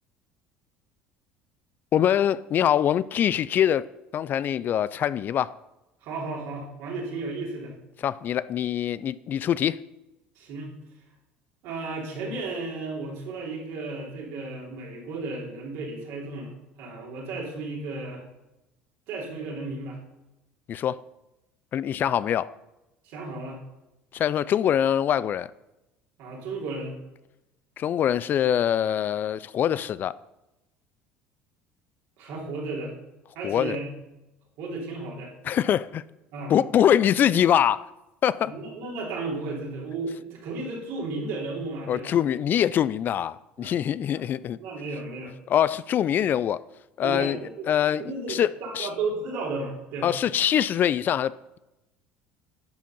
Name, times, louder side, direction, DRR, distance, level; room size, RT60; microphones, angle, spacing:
voice 1, 1.9-3.8 4.1-5.5 8.0-9.8 20.7-21.0 21.7-22.5 24.1-25.5 27.8-30.1 33.4-33.8 35.4-36.0 36.5-37.9 38.2-38.5 41.9-44.6 45.5-46.6 47.0-47.4 47.7-48.0 48.3-48.5 48.7-48.9 50.0-51.3, left 10 dB, 45° left, 0.3 m, -23 dB
voice 2, 6.0-7.7 10.4-10.7 11.6-16.5 16.8-18.2 19.1-20.0 23.0-23.6 26.2-26.9 32.2-32.9 33.3-33.9 34.6-35.3 36.3-36.6 38.4-42.2 43.6-43.7 44.1-44.2 44.6-45.3 47.0-47.7 48.0-50.1, right 3 dB, 70° right, 3.1 m, -34 dB
10.5 x 4.9 x 5.3 m
supercardioid pair, 85°, 4 cm